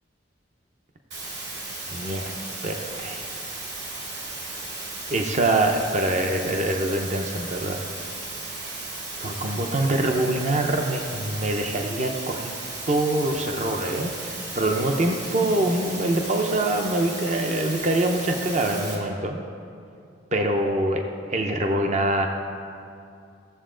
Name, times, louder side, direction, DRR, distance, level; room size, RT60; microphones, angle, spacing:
sound 1, 1.1-19.0, right 2 dB, 60° right, 2.4 m, -35 dB
voice 1, 1.9-2.3 2.6-3.2 5.1-7.8 9.2-12.5 12.9-19.4 20.3-21.0 21.3-22.3, right 1 dB, 35° right, 3 dB, 0.6 m, -24 dB
15.0 x 7.3 x 3.8 m, 2.5 s
head